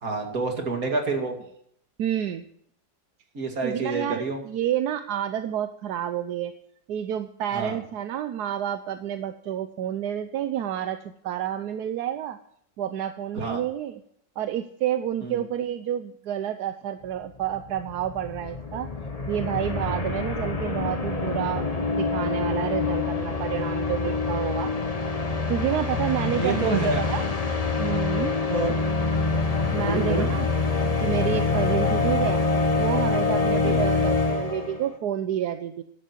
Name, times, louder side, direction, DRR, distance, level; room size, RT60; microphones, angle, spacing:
voice 1, 0.0-1.3 3.3-4.4 7.5-7.8 13.4-13.6 15.2-15.4 26.3-27.0 28.5-28.7 29.8-30.3 33.6-33.9, right 3 dB, 50° right, 3 dB, 2.7 m, -28 dB
voice 2, 2.0-2.5 3.6-6.5 6.9-11.0 11.2-12.4 12.8-14.0 14.4-18.9 19.3-24.7 25.5-27.2 27.8-28.3 29.7-30.5 31.0-32.4 32.8-35.8, right 10 dB, 65° right, 10 dB, 1.2 m, -29 dB
sound 1, 17.2-17.3 17.4-34.9, left 3 dB, 25° left, 1.1 m, -26 dB
14.0 x 11.5 x 4.5 m, 0.70 s
omnidirectional pair, 2.0 m